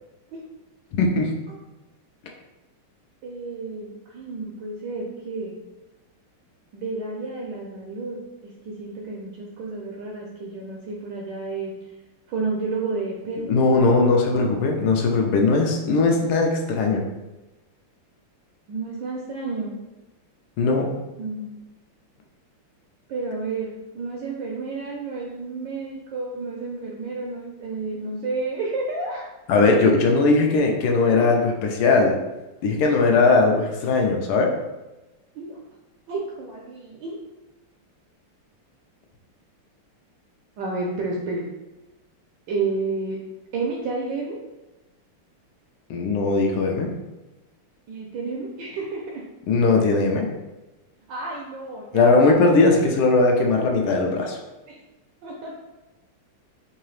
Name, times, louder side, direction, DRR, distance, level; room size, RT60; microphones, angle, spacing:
voice 1, 0.9-1.3 13.5-17.0 20.6-20.9 29.5-32.2 32.6-34.5 45.9-46.9 49.5-50.3 51.9-54.4, left 3 dB, 80° left, 2 dB, 1.5 m, -19 dB
voice 2, 3.2-5.6 6.7-11.7 12.3-13.6 18.7-19.8 21.2-21.5 23.1-29.3 30.1-30.4 31.1-31.3 35.3-35.6 36.1-37.2 40.6-41.5 42.5-43.2 43.5-44.4 47.9-49.2 51.1-52.2 53.9-54.2 54.7-54.8 55.2-55.5, right 3 dB, 75° right, -2 dB, 1.0 m, -31 dB
3.8 x 2.8 x 3.1 m, 1.1 s
omnidirectional pair, 2.4 m